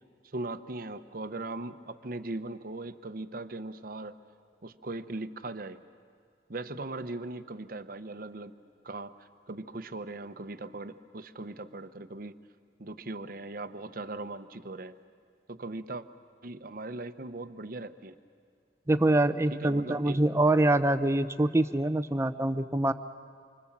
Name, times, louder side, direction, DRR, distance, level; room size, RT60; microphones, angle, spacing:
voice 1, 0.3-4.2 4.6-5.8 6.5-8.5 8.8-9.1 9.5-12.3 12.8-14.9 15.5-16.0 16.4-18.1 19.5-20.2, right 2 dB, 55° right, 11 dB, 0.9 m, -39 dB
voice 2, 18.9-22.9, right 1 dB, 15° right, 11 dB, 0.6 m, -25 dB
26.5 x 24.5 x 7.4 m, 2.1 s
head